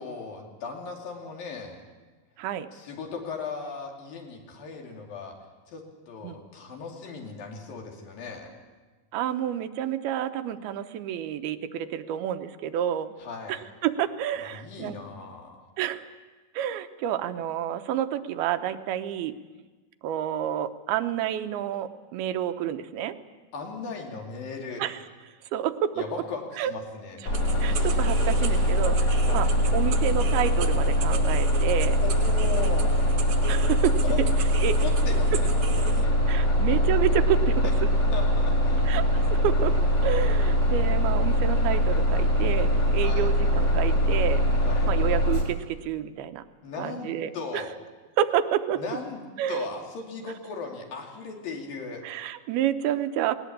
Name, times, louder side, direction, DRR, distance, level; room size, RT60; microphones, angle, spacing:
voice 1, 0.0-1.8 2.7-5.4 5.7-8.5 13.2-13.6 14.4-15.6 23.5-24.9 26.0-27.3 29.2-29.5 32.0-33.0 34.0-34.4 34.8-36.1 38.1-39.0 43.0-43.3 44.6-44.9 46.6-47.7 48.8-52.0, left 4 dB, 70° left, 1 dB, 4.3 m, -37 dB
voice 2, 9.1-13.1 13.5-15.0 15.8-16.1 16.5-19.4 20.0-23.1 24.8-25.0 25.5-25.9 26.6-26.7 27.6-32.0 33.5-34.0 34.6-34.8 36.3-37.7 38.9-39.0 39.3-39.8 40.0-44.4 44.8-46.4 46.8-47.6 48.2-48.8 49.4-49.7 52.0-53.4, right 10 dB, 90° right, 8 dB, 2.8 m, -29 dB
Bus, 27.3-45.4, equal, 50° left, 4.9 m, -22 dB
sound 1, 27.3-36.0, right 9 dB, 70° right, 2.0 m, -39 dB
19.0 x 19.0 x 8.5 m, 1.3 s
omnidirectional pair, 4.3 m